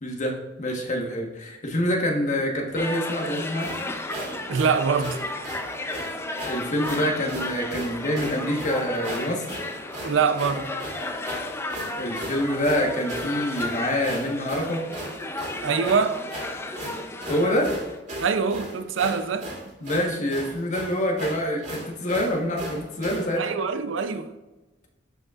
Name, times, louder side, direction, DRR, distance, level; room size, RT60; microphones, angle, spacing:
voice 1, 0.0-3.7 6.5-9.6 12.0-14.8 17.3-17.7 19.8-23.5, equal, 40° left, 1.3 m, -26 dB
sound 1, 2.8-18.0, left 2 dB, 15° left, 0.5 m, -34 dB
sound 2, 3.6-23.3, right 1 dB, 40° right, 2.5 m, -37 dB
voice 2, 4.5-5.2 10.0-10.7 15.6-16.2 18.2-19.5 23.4-24.3, right 5 dB, 75° right, 0.5 m, -24 dB
12.0 x 5.2 x 2.4 m
head